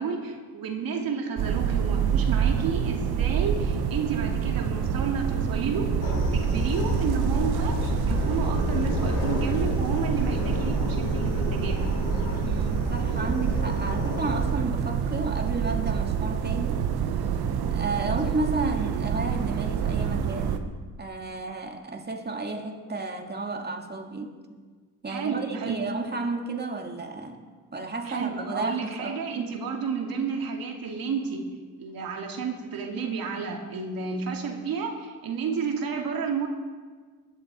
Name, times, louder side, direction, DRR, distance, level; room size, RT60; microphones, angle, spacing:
voice 1, 0.0-5.9 6.3-12.0 25.1-25.8 28.0-31.5 31.8-36.5, right 5 dB, 70° right, 1 dB, 2.6 m, -31 dB
sound 1, 1.4-20.6, right 8 dB, 85° right, 1.1 m, -27 dB
sound 2, 6.0-14.5, left 1 dB, 50° left, 5.3 m, -29 dB
voice 2, 12.4-16.8 17.7-24.4 25.0-27.4 27.7-29.5, right 3 dB, 25° right, 3 dB, 2.2 m, -32 dB
21.0 x 10.5 x 4.4 m, 1.5 s
cardioid pair, 80°, 37 cm